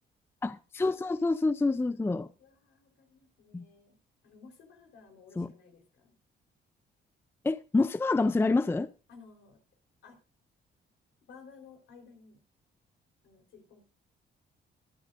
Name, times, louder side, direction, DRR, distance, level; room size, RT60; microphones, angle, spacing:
voice 1, 0.4-2.3 3.5-3.6 5.4-5.5 7.4-8.9, left 3 dB, 10° left, 0.4 m, -27 dB
voice 2, 1.8-4.0 4.2-6.1 9.1-9.6 10.0-10.2 11.3-12.4 13.2-13.8, left 5 dB, 75° left, 3.9 m, -55 dB
21.5 x 8.2 x 2.5 m
cardioid pair, 90°, 20 cm